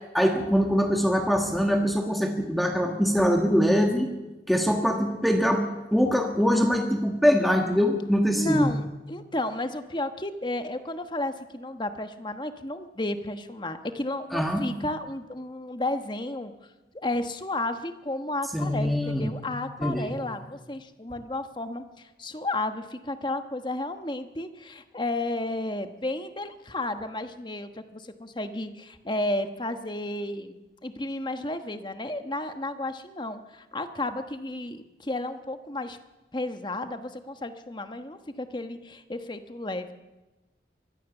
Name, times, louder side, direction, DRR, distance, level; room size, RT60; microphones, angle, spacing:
voice 1, 0.1-4.1 4.5-5.6 5.9-8.7 14.3-14.6 18.5-19.3 19.8-20.1, equal, ahead, 2 dB, 1.6 m, -23 dB
voice 2, 8.3-16.5 16.9-36.0 36.3-39.9, left 2 dB, 25° left, 8 dB, 1.2 m, -32 dB
24.0 x 15.5 x 7.1 m, 1.1 s
head